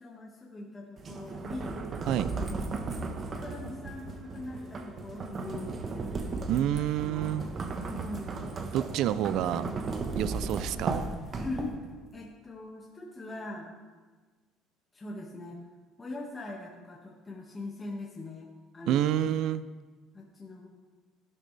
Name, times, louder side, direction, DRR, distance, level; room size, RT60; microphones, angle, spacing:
voice 1, 0.0-1.8 2.2-2.7 3.2-6.1 6.5-8.5 11.4-11.8 12.1-13.7 14.9-15.6 16.0-18.5 18.7-19.3 20.1-20.7, left 2 dB, 20° left, -3 dB, 1.9 m, -42 dB
sound 1, 1.0-12.0, right 3 dB, 35° right, 1.3 m, -36 dB
voice 2, 6.5-7.5 8.7-9.7 10.2-11.0 18.9-19.6, right 11 dB, 65° right, 15 dB, 0.5 m, -28 dB
14.0 x 12.0 x 3.4 m, 1.4 s
cardioid pair, 115°, 0 cm